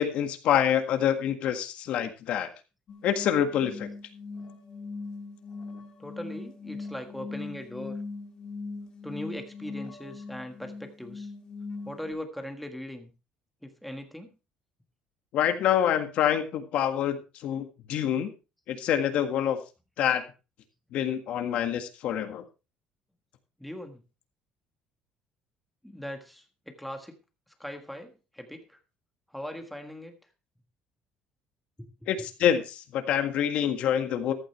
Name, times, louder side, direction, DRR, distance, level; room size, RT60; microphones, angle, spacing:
voice 1, 0.0-2.5 3.0-3.9 15.3-18.3 18.7-19.6 20.0-20.2 20.9-22.4 32.1-34.3, left 9 dB, 50° left, 8 dB, 1.7 m, -26 dB
sound 1, 2.9-12.1, left 3 dB, 30° left, 1.7 m, -40 dB
voice 2, 6.0-8.0 9.0-11.3 11.8-13.1 13.6-14.3 23.6-24.0 25.8-27.1 27.6-28.8 29.3-30.2 31.8-31.9, left 1 dB, ahead, 5 dB, 1.5 m, -40 dB
14.5 x 11.5 x 3.2 m, 0.30 s
cardioid pair, 175°, 3 cm